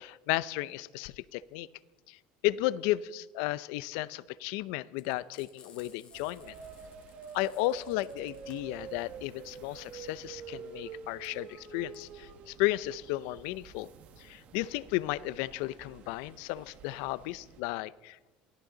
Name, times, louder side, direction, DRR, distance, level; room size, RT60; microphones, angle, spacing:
voice 1, 0.0-1.7 2.1-2.2 2.4-6.5 7.3-13.9 14.2-18.2, left 17 dB, 80° left, 19 dB, 0.5 m, -34 dB
Frying (food), 4.9-13.7, left 6 dB, 35° left, 3.0 m, -60 dB
sound 1, 6.1-17.6, right 6 dB, 50° right, 1.8 m, -48 dB
23.5 x 15.0 x 3.9 m, 1.2 s
cardioid pair, 135°, 3 cm